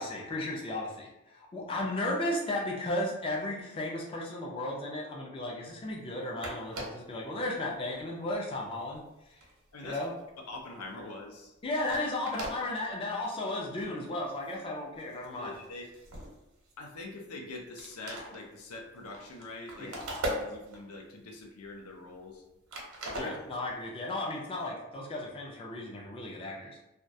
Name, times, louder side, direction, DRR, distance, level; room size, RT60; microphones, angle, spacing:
voice 1, 0.0-9.4 9.8-10.1 11.6-15.5 19.8-20.1 23.2-26.8, left 1 dB, 25° left, -2 dB, 0.3 m, -35 dB
sound 1, 6.1-6.2 6.4-7.1 7.7-7.9 8.3-10.6 11.0-11.2 11.6-11.7 11.8-12.6 13.2-13.3 13.7-13.9 14.3-14.7 14.9-17.2 17.5-17.6 17.8-21.0 21.4-22.4 22.7-23.8, right 1 dB, 85° right, 0.7 m, -40 dB
voice 2, 10.5-11.5 15.4-15.8 16.8-20.0 20.3-22.4 23.1-23.5, left 2 dB, 80° left, 2 dB, 0.5 m, -44 dB
2.2 x 2.1 x 2.6 m, 0.92 s
head